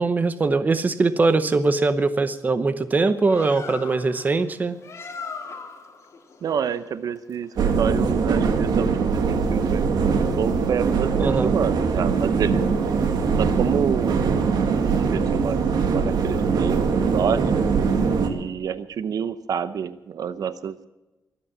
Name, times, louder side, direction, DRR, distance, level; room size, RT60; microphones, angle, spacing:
voice 1, 0.0-4.8 11.2-11.5, right 3 dB, 25° right, 12 dB, 0.8 m, -21 dB
Bird, 3.0-8.2, left 5 dB, 45° left, 1.9 m, -40 dB
voice 2, 6.4-12.6 13.4-14.5 15.1-15.6 15.9-17.7 18.2-20.9, right 7 dB, 65° right, 13 dB, 0.7 m, -28 dB
sound 1, 7.6-18.3, right 5 dB, 80° right, 1.9 m, -22 dB
23.5 x 8.4 x 7.2 m, 1.0 s
wide cardioid pair, 175°, 7 cm